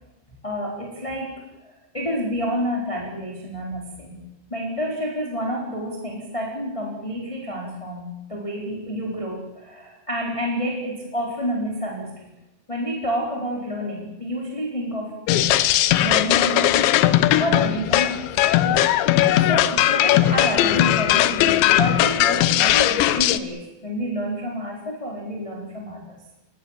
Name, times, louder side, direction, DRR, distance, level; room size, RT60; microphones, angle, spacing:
voice 1, 0.4-12.3 12.7-18.3 18.6-18.8 19.2-26.2, equal, 5° left, -1 dB, 3.6 m, -29 dB
sound 1, 15.3-23.4, left 13 dB, 75° left, 3.1 m, -18 dB
30.0 x 17.5 x 7.5 m, 1.0 s
omnidirectional pair, 5.6 m